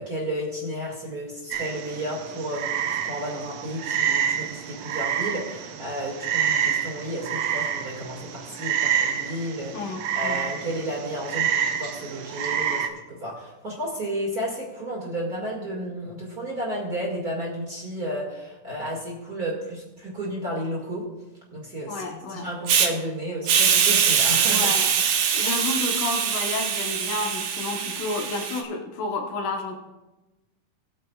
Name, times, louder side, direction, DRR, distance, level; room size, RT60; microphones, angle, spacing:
voice 1, 0.0-21.0 21.5-24.7, equal, 35° right, -3 dB, 2.2 m, -32 dB
Frog, 1.5-12.9, right 8 dB, 90° right, 2.4 m, -28 dB
voice 2, 9.7-10.4 21.9-22.5 24.5-24.9 25.3-29.8, left 3 dB, 85° left, 2 dB, 2.7 m, -31 dB
Hiss, 22.7-22.9 23.5-28.6, right 7 dB, 75° right, 2.3 m, -23 dB
21.5 x 9.0 x 2.4 m, 1.1 s
omnidirectional pair, 3.5 m